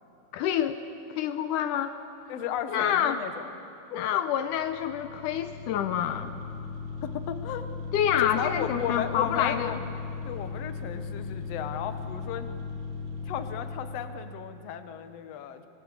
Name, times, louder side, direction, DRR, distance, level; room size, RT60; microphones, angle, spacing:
voice 1, 0.3-0.8 1.1-1.9 2.7-3.2 3.9-6.3 7.9-9.8, left 9 dB, 80° left, 9 dB, 2.3 m, -27 dB
voice 2, 2.3-3.5 7.0-7.7 8.2-9.8 10.2-12.6 13.2-15.6, left 9 dB, 60° left, 9 dB, 2.0 m, -34 dB
sound 1, 4.4-14.3, left 5 dB, 90° right, 4.5 m, -37 dB
25.0 x 22.0 x 8.5 m, 2.8 s
omnidirectional pair, 3.8 m